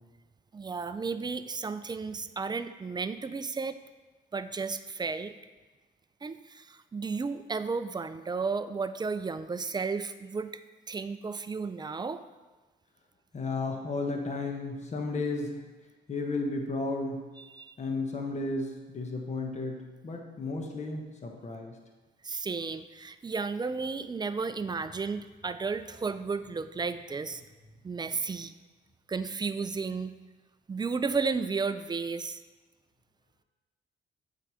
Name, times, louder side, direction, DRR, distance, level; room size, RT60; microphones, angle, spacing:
voice 1, 0.5-3.8 4.3-5.3 6.2-12.2 17.4-17.7 22.2-27.4 27.8-28.5 29.1-30.1 30.7-32.4, right 4 dB, 20° right, 11 dB, 0.4 m, -33 dB
voice 2, 13.3-15.6 16.1-17.2 17.8-21.8, left 3 dB, 35° left, 2 dB, 1.2 m, -33 dB
7.7 x 4.7 x 4.9 m, 1.2 s
cardioid pair, 90°, 20 cm